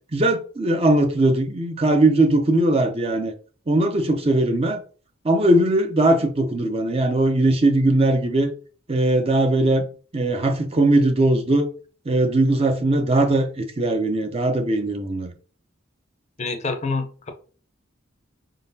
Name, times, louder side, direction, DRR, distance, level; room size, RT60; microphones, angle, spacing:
voice 1, 0.1-3.3 3.7-4.8 5.2-8.5 8.9-9.8 10.1-11.7 12.1-15.3, right 1 dB, 30° right, 0.5 m, -20 dB
voice 2, 16.4-17.3, left 3 dB, 35° left, 0.6 m, -27 dB
4.8 x 3.8 x 2.7 m
head